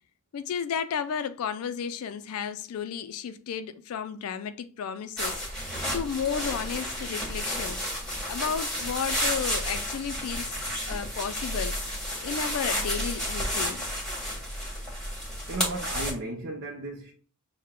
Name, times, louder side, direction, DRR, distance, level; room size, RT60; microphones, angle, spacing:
voice 1, 0.3-7.8 8.3-11.8 12.2-13.8, left 7 dB, 75° left, 0.4 m, -33 dB
sound 1, 5.2-16.1, equal, 5° left, 1.5 m, -31 dB
voice 2, 15.5-17.1, right 2 dB, 55° right, 0.6 m, -34 dB
6.5 x 2.2 x 3.6 m
head